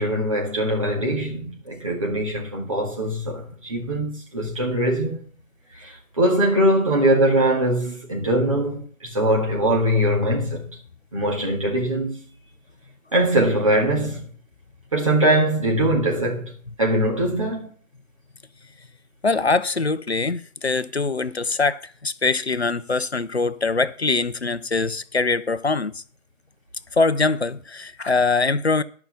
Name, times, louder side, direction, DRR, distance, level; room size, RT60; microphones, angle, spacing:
voice 1, 0.0-5.2 5.8-10.6 11.1-12.2 13.1-14.3 14.9-16.5 16.8-17.7, right 1 dB, 25° right, 1.8 m, -22 dB
voice 2, 19.2-26.0 26.9-28.8, left 3 dB, 50° left, 0.7 m, -23 dB
12.0 x 5.8 x 7.0 m
figure-of-eight pair, 160°, 41 cm